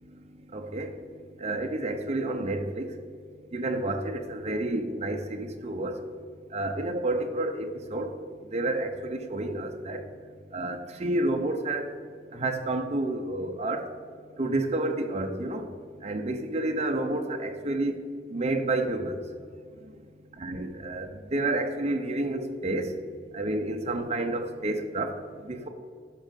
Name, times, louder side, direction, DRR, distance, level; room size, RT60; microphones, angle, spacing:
voice 1, 0.5-1.0 1.4-2.9 3.5-6.0 6.5-8.1 8.5-10.0 10.5-11.9 12.3-13.8 14.4-15.7 16.0-18.0 18.3-19.2 20.4-22.9 23.3-25.1 25.4-25.7, right 2 dB, 40° right, 6 dB, 0.8 m, -30 dB
11.5 x 6.3 x 5.2 m, 2.1 s
head